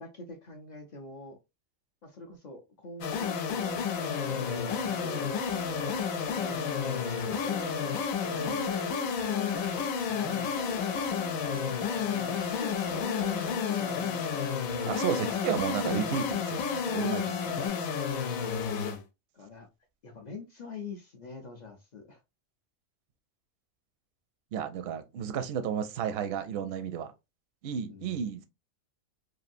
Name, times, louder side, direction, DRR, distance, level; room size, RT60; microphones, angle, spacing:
voice 1, 0.0-1.4 2.0-5.8 6.3-7.8 10.3-11.3 12.1-14.0 15.5-15.6 17.6-17.8 19.3-19.7 20.0-22.2 27.9-28.2, left 3 dB, 70° left, 0.4 m, -44 dB
sound 1, 3.0-19.0, left 6 dB, 90° left, 1.0 m, -31 dB
sound 2, 3.9-17.7, left 2 dB, 50° left, 1.0 m, -44 dB
sound 3, 5.4-13.6, right 5 dB, 90° right, 1.4 m, -53 dB
voice 2, 8.4-8.7 14.9-17.8 24.5-27.1 27.6-28.4, right 8 dB, 65° right, 0.6 m, -33 dB
3.0 x 2.6 x 2.5 m
omnidirectional pair, 1.4 m